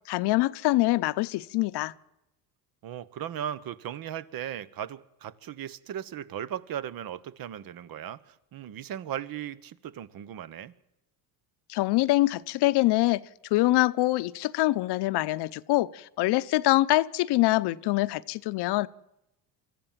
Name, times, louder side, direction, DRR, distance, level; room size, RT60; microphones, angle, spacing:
voice 1, 0.1-1.9 11.7-13.2 13.5-18.9, left 18 dB, 65° left, 0.9 m, -24 dB
voice 2, 2.8-10.7, right 10 dB, 50° right, 1.2 m, -37 dB
24.5 x 14.5 x 7.6 m
supercardioid pair, 100°, 43 cm